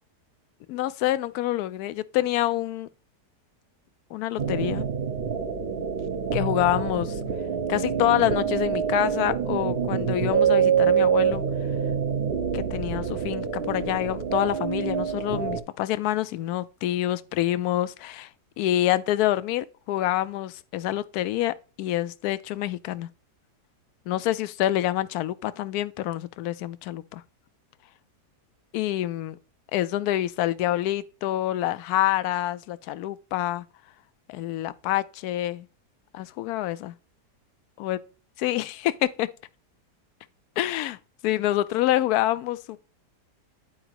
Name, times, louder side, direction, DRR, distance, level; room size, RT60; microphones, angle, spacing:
voice 1, 0.7-2.9 4.1-4.9 6.3-7.2 7.7-11.4 12.5-18.3 18.6-23.1 24.1-27.2 28.7-29.4 29.7-33.6 34.3-35.7 36.1-36.9 37.8-38.0 38.4-39.3 40.6-41.0 41.2-42.8, left 14 dB, 75° left, 1.0 m, -27 dB
sound 1, 4.4-15.6, right 7 dB, 45° right, 0.8 m, -26 dB
10.0 x 4.8 x 2.9 m
omnidirectional pair, 1.8 m